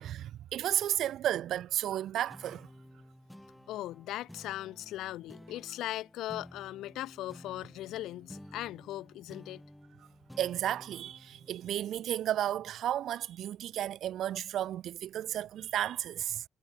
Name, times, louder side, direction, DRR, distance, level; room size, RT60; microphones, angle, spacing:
voice 1, 0.0-2.7 10.4-16.4, right 11 dB, 75° right, 1.7 m, -33 dB
sound 1, 2.3-13.1, equal, 5° left, 7.8 m, -53 dB
voice 2, 3.7-9.6, left 14 dB, 85° left, 2.7 m, -39 dB
cardioid pair, 90°, 0 cm